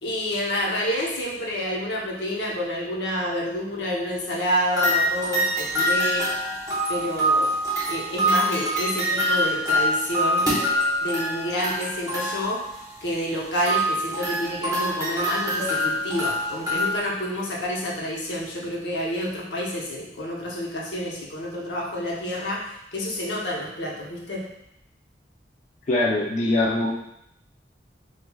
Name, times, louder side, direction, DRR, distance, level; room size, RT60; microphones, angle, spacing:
voice 1, 0.0-6.3 6.9-7.5 7.9-10.5 11.0-12.6 13.0-24.5, equal, 85° left, -3 dB, 0.8 m, -28 dB
sound 1, 4.7-13.0 13.6-17.0, equal, 20° right, 0.7 m, -25 dB
voice 2, 25.9-26.9, left 2 dB, 45° left, -3 dB, 0.4 m, -22 dB
4.4 x 2.3 x 2.3 m, 0.79 s
head